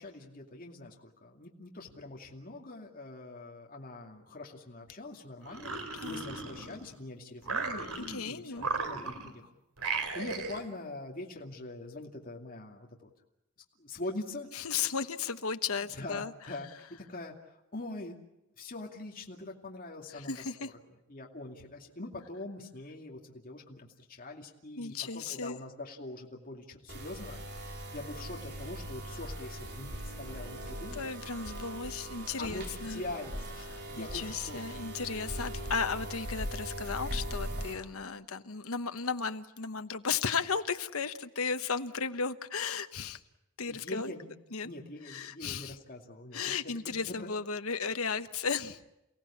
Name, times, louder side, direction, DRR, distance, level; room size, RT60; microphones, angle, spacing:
voice 1, 0.0-5.7 6.0-9.5 10.1-13.1 13.8-14.5 15.8-16.7 17.1-18.2 18.5-20.3 20.6-20.7 21.1-31.1 32.4-34.8 43.7-44.3 44.6-46.5 47.2-47.3, left 2 dB, 40° left, 0 dB, 2.5 m, -43 dB
sound 1, 5.4-7.0 7.4-8.2 8.6-9.4 9.8-10.7, right 4 dB, 85° right, 2.8 m, -36 dB
voice 2, 5.9-6.2 8.1-8.7 14.5-16.3 20.1-20.7 24.8-25.6 30.9-33.0 33.7-43.2 43.6-44.1 44.5-44.7 45.0-45.8 46.3-48.8, left 5 dB, 75° left, 9 dB, 1.1 m, -35 dB
sound 2, 26.9-37.7, equal, 50° right, 4.1 m, -40 dB
29.5 x 17.5 x 8.7 m, 0.89 s
head